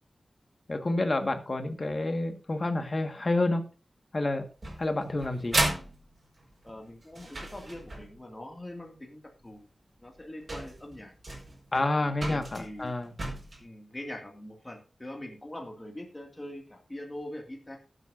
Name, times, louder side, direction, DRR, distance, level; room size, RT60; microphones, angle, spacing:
voice 1, 0.7-3.6 4.1-4.5 4.8-5.6 11.7-13.1, left 2 dB, 40° left, 7 dB, 1.6 m, -29 dB
sound 1, 4.6-8.2 9.6-9.7 10.2-10.3 10.5-13.6, right 2 dB, 40° right, 4.7 m, -34 dB
voice 2, 6.6-9.7 10.0-11.1 11.9-12.9 13.6-17.8, left 1 dB, 20° left, 1 dB, 2.1 m, -43 dB
19.0 x 8.2 x 2.6 m, 0.34 s
wide cardioid pair, 110°, 0 cm